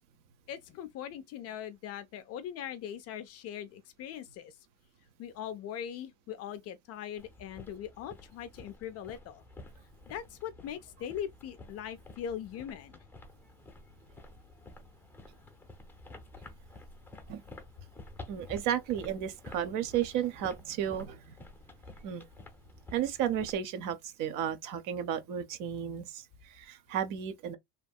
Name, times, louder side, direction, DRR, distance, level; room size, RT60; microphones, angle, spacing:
voice 1, 0.5-4.5 5.2-9.4 10.1-13.0, left 9 dB, 40° left, 0.4 m, -41 dB
sound 1, 7.2-23.6, left 2 dB, 5° left, 0.6 m, -51 dB
voice 2, 18.3-21.3 22.0-22.3 22.9-27.6, right 9 dB, 55° right, 0.8 m, -33 dB
2.8 x 2.6 x 2.3 m
supercardioid pair, 130°, 38 cm